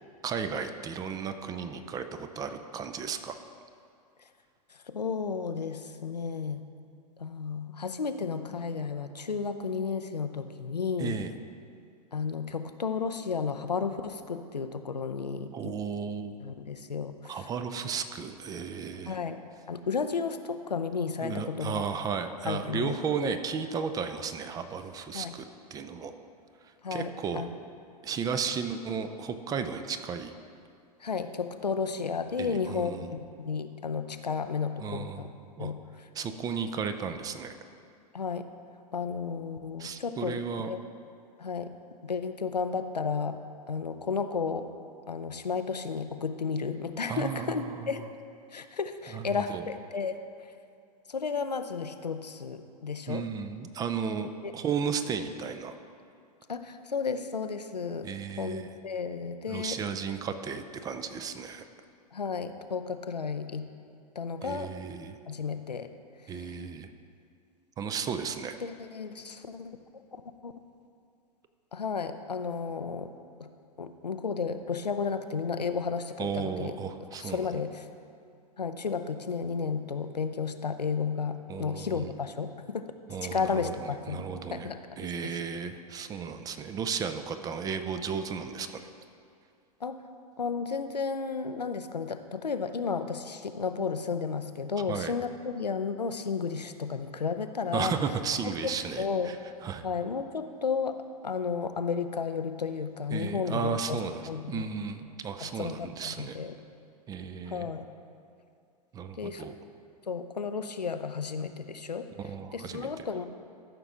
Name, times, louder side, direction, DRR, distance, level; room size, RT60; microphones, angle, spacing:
voice 1, 0.2-3.4 11.0-11.3 15.5-16.4 17.3-19.2 21.2-25.4 25.7-26.1 26.6-27.5 28.0-30.4 32.4-33.1 34.8-35.3 35.6-35.7 36.1-37.5 39.8-40.7 47.1-48.0 49.1-49.6 53.1-55.8 58.0-58.7 59.5-61.6 64.4-65.2 66.3-66.9 67.8-68.6 76.2-77.5 81.5-82.1 83.1-84.7 85.0-88.9 94.9-95.1 97.7-99.4 99.6-99.8 103.1-106.4 107.1-107.7 108.9-109.6 112.2-112.9, right 6 dB, 20° right, 9 dB, 0.4 m, -34 dB
voice 2, 4.7-6.7 7.2-11.2 12.1-15.7 16.4-17.4 19.1-19.4 19.7-21.8 22.5-23.3 25.1-25.3 26.8-27.5 31.0-35.3 35.6-35.8 38.1-38.4 38.9-40.4 40.7-40.8 41.4-41.7 42.0-43.4 43.7-44.7 45.1-48.0 48.5-50.5 51.1-53.2 54.4-54.5 56.5-58.1 58.4-59.8 62.1-63.7 64.2-64.7 65.3-65.9 66.2-66.5 68.6-69.7 70.4-70.5 71.7-73.1 73.4-73.5 73.8-76.8 77.2-77.9 78.6-82.8 83.2-84.3 84.5-85.4 89.8-90.0 90.4-97.9 98.6-99.3 99.8-101.0 101.2-104.0 104.3-104.7 105.4-106.5 107.5-107.9 109.2-109.5 110.1-112.1 112.5-113.3, left 5 dB, 85° left, 9 dB, 0.5 m, -33 dB
13.5 x 5.9 x 3.7 m, 2.4 s
figure-of-eight pair, 95°, 20 cm